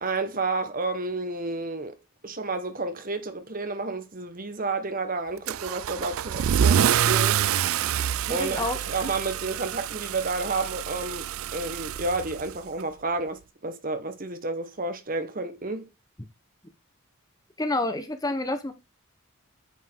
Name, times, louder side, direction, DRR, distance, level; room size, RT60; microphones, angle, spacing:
voice 1, 0.0-2.0 2.2-7.5 8.3-15.9, right 3 dB, 40° right, 1.2 m, -31 dB
Car / Engine starting / Accelerating revving vroom, 5.5-12.8, right 9 dB, 70° right, 0.4 m, -26 dB
voice 2, 8.3-8.8 17.6-18.7, left 2 dB, 15° left, 0.9 m, -28 dB
9.1 x 5.3 x 3.6 m
head